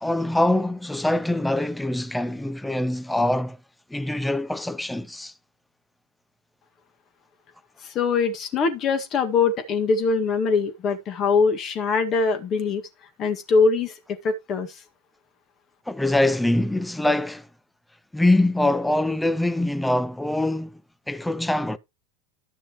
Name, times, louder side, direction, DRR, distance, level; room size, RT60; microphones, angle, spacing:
voice 1, 0.0-3.6 3.9-5.3 15.9-17.5 18.1-20.8 21.1-21.8, left 1 dB, 5° left, 0.6 m, -23 dB
voice 2, 7.8-12.8 13.2-13.9 14.2-14.8, left 4 dB, 35° left, 1.8 m, -22 dB
12.5 x 6.5 x 3.0 m
figure-of-eight pair, 85°, 0 cm